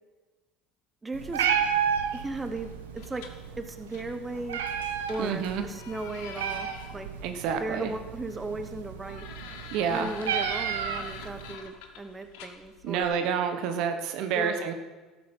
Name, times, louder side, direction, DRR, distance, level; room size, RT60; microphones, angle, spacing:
voice 1, 1.0-1.5 2.1-3.3 3.6-4.6 5.1-7.1 7.6-9.2 9.9-13.1 14.3-14.6, right 2 dB, 20° right, 8 dB, 1.0 m, -36 dB
Meow, 1.1-11.5, right 8 dB, 90° right, 0.9 m, -33 dB
sound 1, 2.3-13.1, left 7 dB, 75° left, 1.2 m, -47 dB
voice 2, 5.2-5.6 7.2-7.9 9.7-10.1 12.8-14.7, right 7 dB, 65° right, 7 dB, 1.1 m, -28 dB
13.0 x 7.5 x 5.4 m, 1.3 s
hypercardioid pair, 75°, 0 cm